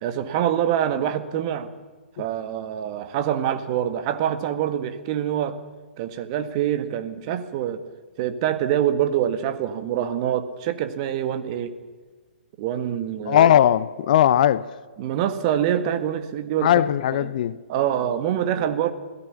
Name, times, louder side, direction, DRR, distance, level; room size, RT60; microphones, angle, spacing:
voice 1, 0.0-1.7 2.2-5.6 6.0-7.8 8.2-11.7 12.6-13.5 15.0-16.8 17.2-17.3 17.7-18.9, right 10 dB, 35° right, 1.7 m, -25 dB
voice 2, 13.3-14.7 16.6-17.6, left 11 dB, 45° left, 0.7 m, -18 dB
26.5 x 17.0 x 7.1 m
figure-of-eight pair, 120°, 6 cm